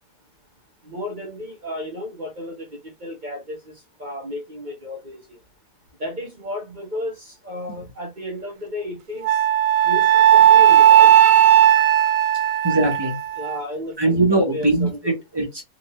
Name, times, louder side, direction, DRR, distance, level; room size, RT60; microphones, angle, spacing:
voice 1, 0.9-3.6 4.0-5.2 6.0-9.4 9.8-11.1 13.4-15.2, left 1 dB, 40° right, 0.7 m, -33 dB
Wind instrument woodwind instrument, 9.2-13.6, right 11 dB, 85° right, 1.3 m, -15 dB
voice 2, 12.6-13.2 14.0-15.6, right 2 dB, 15° right, 1.0 m, -21 dB
3.7 x 2.9 x 3.0 m
omnidirectional pair, 1.9 m